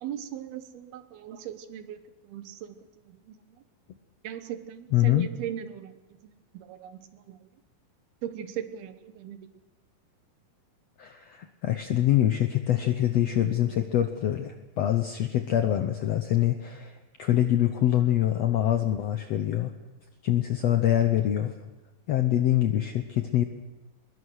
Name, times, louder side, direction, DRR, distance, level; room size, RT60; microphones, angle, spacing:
voice 1, 0.0-2.8 3.1-3.3 4.2-5.9 6.5-7.4 8.2-9.5, right 10 dB, 90° right, 10 dB, 3.2 m, -38 dB
voice 2, 4.9-5.3 11.0-19.7 20.2-21.5 22.1-23.4, left 12 dB, 75° left, 7 dB, 1.5 m, -25 dB
22.5 x 21.0 x 6.5 m, 1.1 s
omnidirectional pair, 4.3 m